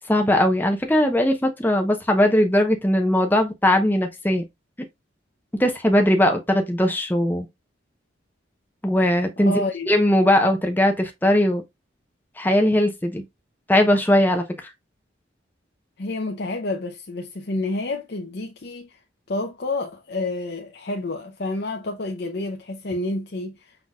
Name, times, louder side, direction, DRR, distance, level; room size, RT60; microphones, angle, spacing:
voice 1, 0.1-4.4 5.5-7.5 8.8-11.6 12.4-13.2 13.7-14.7, left 1 dB, 10° left, 0.8 m, -19 dB
voice 2, 9.4-9.9 16.0-19.0 19.3-23.8, left 2 dB, 55° left, 0.7 m, -29 dB
5.7 x 3.9 x 2.3 m
head